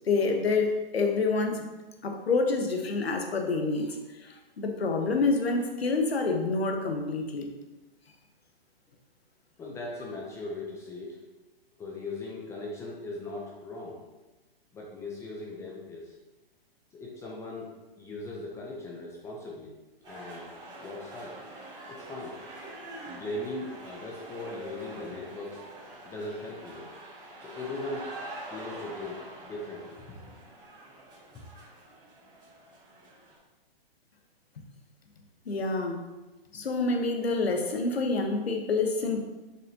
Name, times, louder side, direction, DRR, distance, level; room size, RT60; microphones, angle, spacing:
voice 1, 0.1-1.7 2.0-4.0 4.2-7.5 35.5-36.0 36.5-39.3, left 3 dB, 90° left, 4 dB, 1.1 m, -27 dB
voice 2, 9.6-11.2 11.8-14.0 14.7-16.1 16.9-19.7 20.1-20.5 20.8-21.4 21.9-22.4 23.1-25.6 26.1-26.9 27.4-28.1 28.5-30.2 31.3-31.4, left 2 dB, 10° left, -2 dB, 0.5 m, -39 dB
sound 1, 20.0-33.4, right 2 dB, 15° right, 2.1 m, -45 dB
7.4 x 5.4 x 2.8 m, 1.1 s
hypercardioid pair, 135°, 30 cm